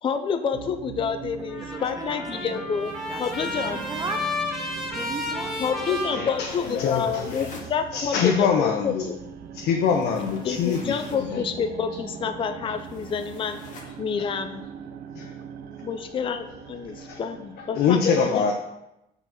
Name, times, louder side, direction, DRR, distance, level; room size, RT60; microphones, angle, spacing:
voice 1, 0.0-2.9 3.2-3.8 5.6-9.2 10.4-13.6 14.0-14.6 15.8-18.4, left 6 dB, 30° left, 8 dB, 0.4 m, -28 dB
sound 1, 0.5-18.0, right 7 dB, 60° right, 0.5 m, -41 dB
Trumpet, 1.4-7.0, left 2 dB, ahead, 1.3 m, -33 dB
voice 2, 1.6-2.6 3.1-3.2 3.7-4.3 4.9-5.6, right 3 dB, 20° right, 7 dB, 0.6 m, -36 dB
sound 2, 2.7-4.4 6.4-7.7 9.8-11.3 12.8-13.9, left 3 dB, 50° left, 1.4 m, -47 dB
voice 3, 6.1-7.4 7.9-9.1 9.5-11.4 12.6-12.7 15.1-15.3 17.0-17.2 17.8-18.5, left 6 dB, 70° left, 1 dB, 0.7 m, -24 dB
4.9 x 4.0 x 5.7 m, 0.92 s
cardioid pair, 110°, 17 cm